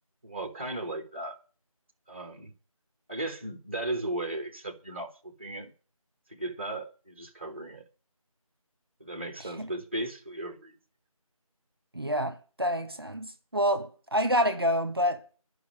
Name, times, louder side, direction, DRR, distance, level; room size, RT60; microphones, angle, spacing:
voice 1, 0.2-1.4 2.1-2.5 3.1-5.7 6.3-7.8 9.0-10.8, right 2 dB, 20° right, 1.4 m, -36 dB
voice 2, 9.4-9.7 11.9-15.2, equal, 40° right, 1.5 m, -28 dB
12.0 x 5.9 x 8.7 m
figure-of-eight pair, 170°, 19 cm